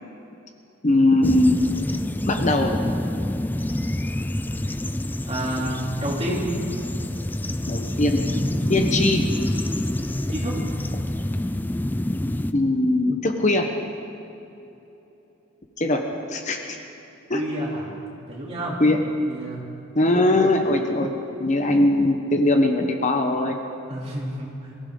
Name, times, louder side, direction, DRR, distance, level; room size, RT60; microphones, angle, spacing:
voice 1, 0.8-1.9 2.3-2.7 7.7-8.2 8.7-9.2 12.5-13.7 15.8-16.0 16.3-16.8 17.3-17.4 18.8-19.0 19.9-21.1 21.4-23.6, left 2 dB, 35° left, 4 dB, 1.0 m, -20 dB
sound 1, 1.2-12.5, left 1 dB, 10° left, 0.4 m, -27 dB
voice 2, 5.3-6.4 10.3-10.6 17.3-17.8 18.3-18.8 19.3-19.6 23.9-24.7, right 1 dB, 30° right, -4 dB, 3.2 m, -29 dB
23.5 x 15.5 x 3.9 m, 3.0 s
head